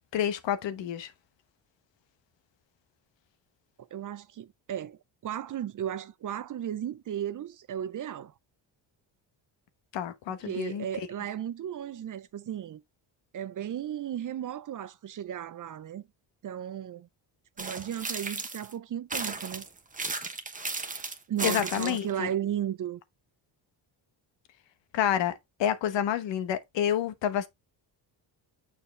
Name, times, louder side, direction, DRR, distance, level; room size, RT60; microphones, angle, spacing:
voice 1, 0.1-1.1 9.9-10.9 21.4-22.3 24.9-27.5, left 10 dB, 70° left, 1.0 m, -29 dB
voice 2, 3.9-8.3 10.5-12.8 13.3-16.0 16.4-17.1 17.6-19.7 21.3-23.0, right 10 dB, 45° right, 0.6 m, -35 dB
sound 1, 17.6-18.7 19.1-22.1, right 3 dB, 15° right, 1.0 m, -35 dB
6.8 x 4.5 x 3.2 m
cardioid pair, 85°, 45 cm